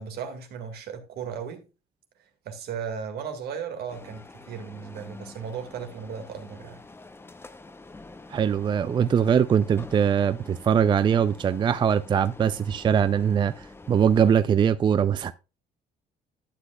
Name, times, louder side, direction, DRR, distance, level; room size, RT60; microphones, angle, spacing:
voice 1, 0.0-1.6 2.2-6.8, right 7 dB, 70° right, 1.9 m, -36 dB
sound 1, 3.9-14.4, left 3 dB, 15° left, 0.6 m, -46 dB
voice 2, 8.3-15.3, right 8 dB, 30° right, 0.3 m, -22 dB
11.5 x 7.7 x 2.3 m
cardioid pair, 110°, 17 cm